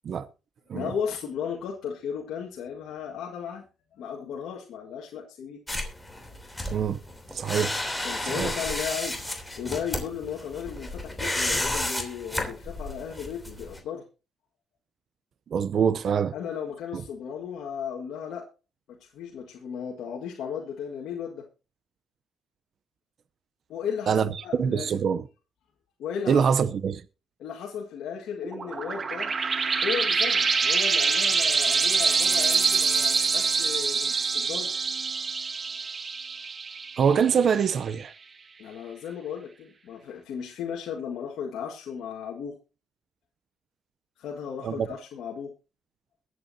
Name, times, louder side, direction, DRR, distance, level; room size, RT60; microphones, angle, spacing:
voice 1, 0.7-3.6 4.0-5.6 8.0-9.2 9.6-14.1 16.3-18.5 18.9-21.4 23.7-25.0 26.0-26.5 27.4-29.3 29.8-34.7 38.6-42.6 44.2-45.5, left 7 dB, 80° left, 1.7 m, -35 dB
sound 1, 5.7-13.8, left 1 dB, 10° left, 3.1 m, -32 dB
voice 2, 7.3-7.8 8.2-8.5 15.5-16.3 16.9-17.0 24.1-24.3 24.5-25.2 26.3-27.0 37.0-38.1 44.6-44.9, right 7 dB, 60° right, 0.6 m, -24 dB
sound 2, 28.4-37.6, right 5 dB, 40° right, 1.3 m, -25 dB
22.0 x 8.2 x 2.7 m
cardioid pair, 90°, 0 cm